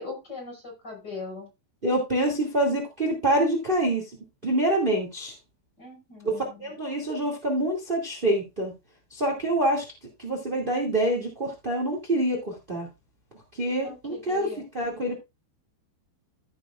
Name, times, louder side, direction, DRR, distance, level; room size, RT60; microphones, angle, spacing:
voice 1, 0.0-1.5 5.8-6.8 13.7-14.6, left 4 dB, 20° left, 0 dB, 5.7 m, -40 dB
voice 2, 1.8-4.1 4.4-5.3 6.2-8.7 9.1-9.8 10.2-12.9 13.5-14.5 14.7-15.1, right 1 dB, 25° right, 0 dB, 1.0 m, -26 dB
15.5 x 7.1 x 2.5 m, 0.24 s
omnidirectional pair, 5.2 m